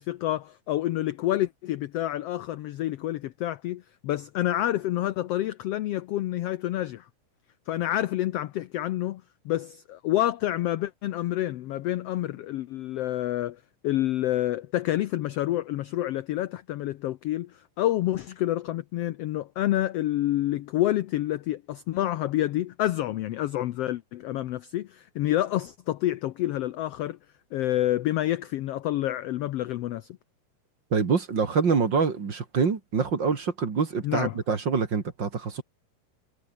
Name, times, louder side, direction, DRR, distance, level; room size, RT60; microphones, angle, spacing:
voice 1, 0.0-7.0 7.7-27.2 27.5-30.1 34.0-34.3, left 14 dB, 80° left, 1.4 m, -28 dB
voice 2, 30.9-35.6, right 5 dB, 40° right, 2.5 m, -25 dB
omnidirectional pair, 3.7 m